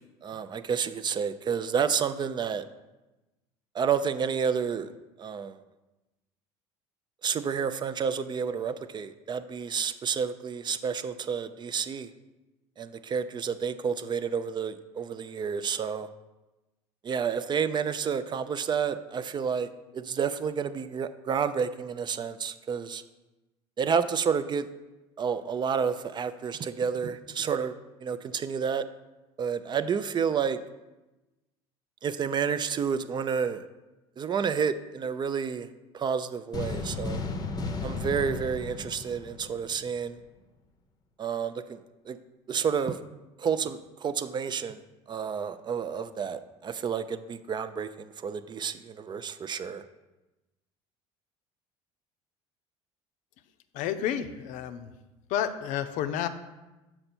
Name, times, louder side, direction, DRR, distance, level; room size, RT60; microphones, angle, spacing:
voice 1, 0.2-2.6 3.7-4.9 5.2-5.6 7.2-12.1 12.8-16.1 17.0-19.7 19.9-23.0 23.8-24.7 25.2-27.7 28.0-28.9 29.4-30.6 32.0-33.6 34.2-35.7 35.9-37.2 37.8-40.2 41.2-41.8 42.1-42.2 42.5-43.0 43.4-44.8 45.1-49.8, right 6 dB, 35° right, 12 dB, 0.4 m, -30 dB
sound 1, 36.5-40.0, left 3 dB, 30° left, 0.7 m, -34 dB
voice 2, 53.7-54.9 55.3-56.3, left 10 dB, 65° left, 10 dB, 0.5 m, -30 dB
6.6 x 4.4 x 4.3 m, 1.1 s
hypercardioid pair, 75°, 14 cm